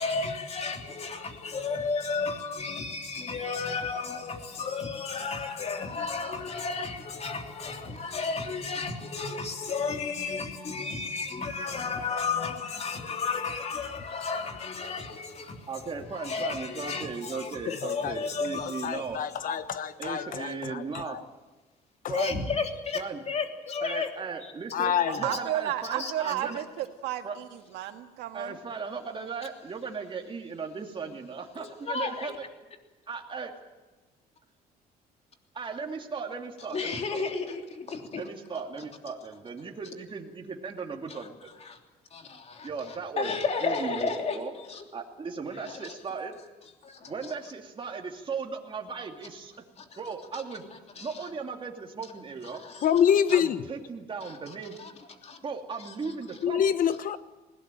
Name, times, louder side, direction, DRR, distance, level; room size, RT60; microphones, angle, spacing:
voice 1, 0.0-15.7 16.1-19.7 20.1-20.5 22.1-24.1 24.4-24.5 25.0-25.6 26.0-26.6 31.6-32.4 36.7-38.2 41.1-41.3 41.6-41.8 42.1-44.8 45.5-45.9 46.8-47.1 49.8-49.9 50.3-50.4 51.0-51.3 52.4-52.9 53.3-53.4 54.2-54.9 55.2-55.4 55.8-55.9, left 4 dB, 40° left, 3.2 m, -33 dB
voice 2, 15.7-19.2 20.0-21.2 22.1-22.4 22.9-23.2 23.8-26.6 27.2-27.4 28.3-32.4 33.1-33.5 35.5-37.2 38.1-41.5 42.6-43.3 43.6-44.5 44.9-46.3 47.0-49.5 50.0-50.6 51.0-52.6 53.3-54.8 55.4-56.6, right 5 dB, 30° right, 2.6 m, -37 dB
voice 3, 17.7-18.2 18.5-21.2 22.0-22.3 24.7-25.2 52.8-53.6 56.4-57.2, left 8 dB, 55° left, 1.2 m, -27 dB
voice 4, 25.2-28.6, right 13 dB, 90° right, 1.9 m, -32 dB
20.0 x 17.5 x 9.0 m
cardioid pair, 110°, 17 cm